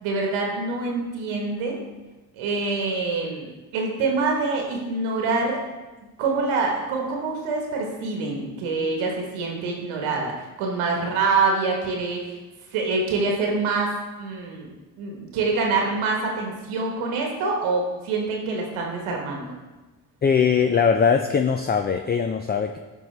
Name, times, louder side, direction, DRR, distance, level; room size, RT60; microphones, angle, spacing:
voice 1, 0.0-1.8 2.4-5.6 6.2-12.4 12.7-14.7 15.0-19.5, right 3 dB, 80° right, 0 dB, 1.4 m, -25 dB
voice 2, 20.2-22.8, left 6 dB, 20° left, 6 dB, 0.4 m, -21 dB
10.5 x 3.6 x 3.3 m, 1.2 s
hypercardioid pair, 50°, 49 cm